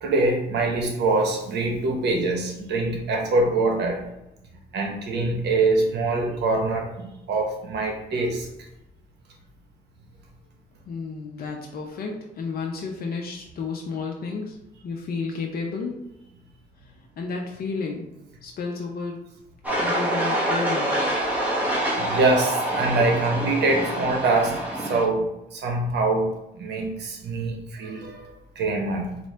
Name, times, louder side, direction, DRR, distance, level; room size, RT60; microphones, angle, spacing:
voice 1, 0.0-4.0 4.7-8.5 22.0-24.6 24.9-29.2, right 2 dB, 80° right, 2 dB, 1.0 m, -24 dB
voice 2, 10.9-14.6 14.8-16.0 17.2-18.1 18.4-19.2 19.8-21.1, left 4 dB, 60° left, 1 dB, 0.6 m, -31 dB
sound 1, 19.6-25.0, right 1 dB, 10° right, 1.2 m, -26 dB
4.3 x 2.6 x 3.2 m, 0.88 s
cardioid pair, 90°, 17 cm